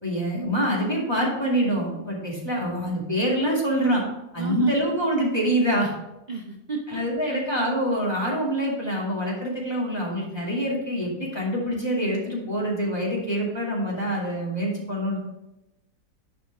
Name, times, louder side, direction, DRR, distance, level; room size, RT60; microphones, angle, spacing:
voice 1, 0.0-4.0 4.3-5.9 6.9-15.2, equal, 15° left, -4 dB, 2.3 m, -25 dB
voice 2, 4.4-4.7 6.3-7.4, right 5 dB, 50° right, 0 dB, 0.5 m, -33 dB
11.0 x 5.1 x 3.5 m, 0.93 s
omnidirectional pair, 1.8 m